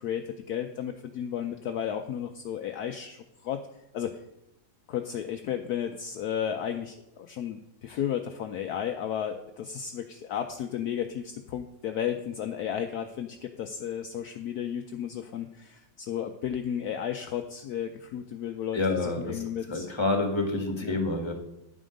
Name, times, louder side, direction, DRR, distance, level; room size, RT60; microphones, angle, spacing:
voice 1, 0.0-3.7 3.9-4.2 4.9-19.9 20.8-21.0, left 9 dB, 70° left, 6 dB, 1.0 m, -33 dB
voice 2, 18.7-19.4 19.7-21.3, left 2 dB, 15° left, 4 dB, 1.5 m, -28 dB
10.0 x 7.4 x 5.1 m, 0.89 s
omnidirectional pair, 2.0 m